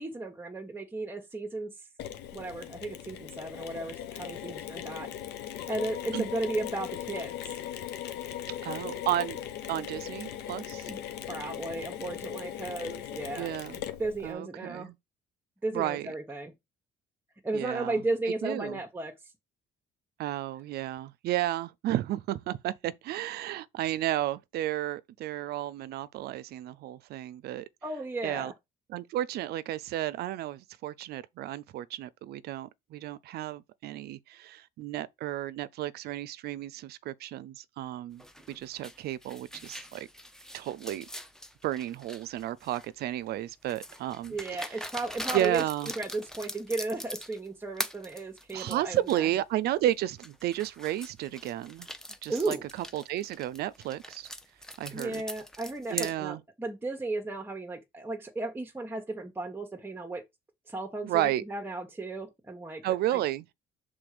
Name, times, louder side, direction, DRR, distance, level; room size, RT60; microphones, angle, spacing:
voice 1, 0.0-1.7 2.3-5.1 5.7-7.6 10.9-13.5 14.0-14.9 15.6-16.5 17.4-19.1 27.8-28.5 44.3-45.6 46.0-49.3 52.3-52.6 54.9-60.2 60.7-62.8 63.1-63.2, right 2 dB, 10° right, 1.2 m, -35 dB
Mechanisms, 2.0-14.3, left 11 dB, 80° left, 1.1 m, -39 dB
voice 2, 8.6-9.4 9.7-10.9 13.4-13.8 14.2-14.9 15.7-16.1 17.5-18.0 18.4-18.8 20.2-27.7 28.2-28.5 28.9-38.2 38.5-40.1 40.5-41.1 41.6-44.4 45.3-45.9 48.5-51.9 52.2-52.6 52.9-54.3 54.8-55.2 55.9-56.4 61.0-61.4 62.8-63.4, right 13 dB, 70° right, 0.6 m, -32 dB
sound 1, 38.2-43.0 43.7-47.5 47.8-49.2 49.7-49.8 50.2-56.1, equal, 5° left, 0.8 m, -42 dB
6.0 x 3.8 x 4.9 m
cardioid pair, 110°, 17 cm